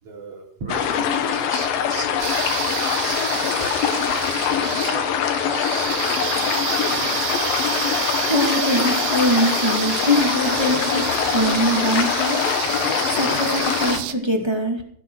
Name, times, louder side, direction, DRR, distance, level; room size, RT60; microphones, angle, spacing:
voice 1, 0.0-3.7 4.0-7.3 10.4-10.8 11.1-11.4 13.0-13.4, right 4 dB, 45° right, -1 dB, 4.0 m, -38 dB
sound 1, 0.7-14.0, left 8 dB, 80° left, 3.0 m, -23 dB
sound 2, 2.2-14.1, right 13 dB, 75° right, 2.2 m, -29 dB
voice 2, 8.2-14.8, equal, 10° right, 1 dB, 1.5 m, -23 dB
17.0 x 8.2 x 6.3 m, 0.63 s
omnidirectional pair, 4.1 m